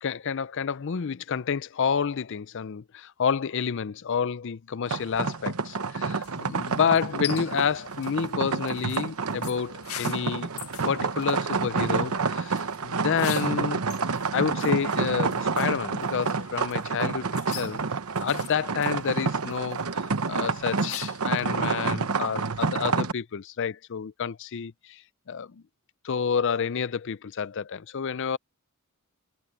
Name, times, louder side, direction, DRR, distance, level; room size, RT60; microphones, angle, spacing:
voice 1, 0.0-10.5 10.8-13.8 14.3-17.8 18.2-25.0 25.3-25.6 26.0-28.4, left 6 dB, 55° left, 0.5 m, -29 dB
sound 1, 4.9-23.1, right 4 dB, 80° right, 1.0 m, -29 dB
sound 2, 6.2-21.4, left 11 dB, 75° left, 1.8 m, -44 dB
head